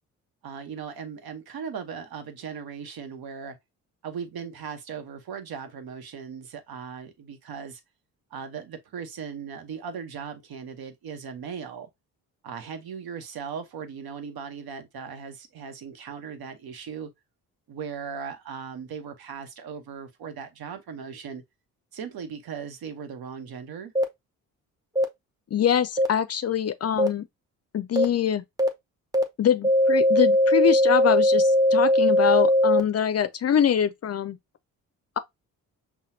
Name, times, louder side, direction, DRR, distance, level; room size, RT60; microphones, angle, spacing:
voice 1, 0.4-3.6 4.0-7.8 8.3-11.9 12.4-17.1 17.7-21.4 21.9-23.9, right 6 dB, 60° right, 1.0 m, -38 dB
sound 1, 24.0-24.1 25.0-25.1 26.0-26.1 27.0-27.1 28.0-28.1 28.6-28.7 29.1-29.2 29.6-32.8, left 1 dB, 10° right, 0.9 m, -19 dB
voice 2, 25.5-27.3 27.7-28.4 29.4-34.4, left 9 dB, 40° left, 0.5 m, -24 dB
5.6 x 2.3 x 2.6 m
hypercardioid pair, 50°, 41 cm